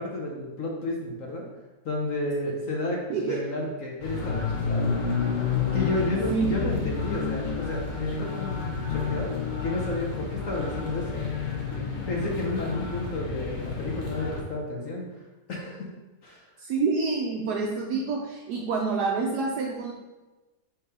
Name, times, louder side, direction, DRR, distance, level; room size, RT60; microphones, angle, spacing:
voice 1, 0.0-1.5 1.8-5.1 5.7-15.9 16.2-16.5, left 2 dB, 55° left, -1 dB, 1.1 m, -32 dB
sound 1, 4.0-14.4, left 5 dB, 40° left, 0.7 m, -30 dB
voice 2, 16.6-19.9, right 4 dB, 70° right, 0 dB, 1.2 m, -27 dB
6.1 x 3.2 x 4.8 m, 1.1 s
omnidirectional pair, 1.9 m